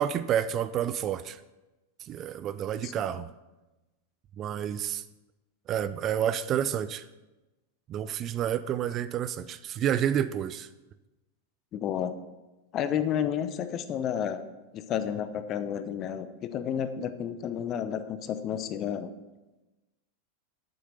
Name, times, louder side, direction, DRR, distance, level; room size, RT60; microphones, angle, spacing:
voice 1, 0.0-1.4 2.0-3.3 4.4-5.0 5.7-7.1 7.9-10.7, right 10 dB, 30° right, 14 dB, 0.4 m, -29 dB
voice 2, 11.7-12.1 12.7-14.4 14.7-19.1, left 9 dB, 35° left, 11 dB, 0.8 m, -31 dB
9.4 x 7.9 x 6.7 m, 1.1 s
figure-of-eight pair, 90°, 0 cm